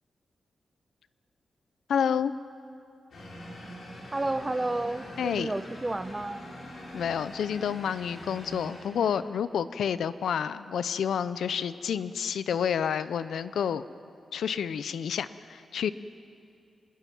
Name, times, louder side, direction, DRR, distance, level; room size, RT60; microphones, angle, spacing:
voice 1, 1.9-2.3 5.2-5.5 6.9-13.8 14.3-15.9, left 8 dB, 90° left, 14 dB, 0.6 m, -29 dB
sound 1, 3.1-9.4, equal, 70° left, 6.0 m, -44 dB
voice 2, 4.1-6.4, right 2 dB, 25° right, 11 dB, 1.1 m, -31 dB
26.5 x 21.0 x 6.1 m, 2.5 s
cardioid pair, 70°, 0 cm